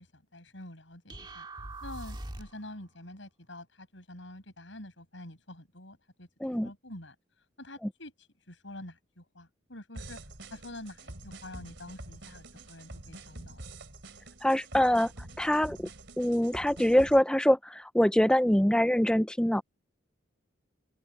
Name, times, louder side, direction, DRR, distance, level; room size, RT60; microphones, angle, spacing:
voice 1, 0.0-1.5 1.8-6.3 6.6-7.2 7.6-8.1 8.5-10.2 10.5-13.6, left 1 dB, 75° left, 5.9 m, -47 dB
sound 1, 1.1-2.7, right 1 dB, 25° right, 1.9 m, -42 dB
sound 2, 9.9-17.2, right 2 dB, 65° right, 3.3 m, -46 dB
voice 2, 14.4-15.1 15.4-15.9 16.2-19.6, equal, 5° left, 0.4 m, -24 dB
head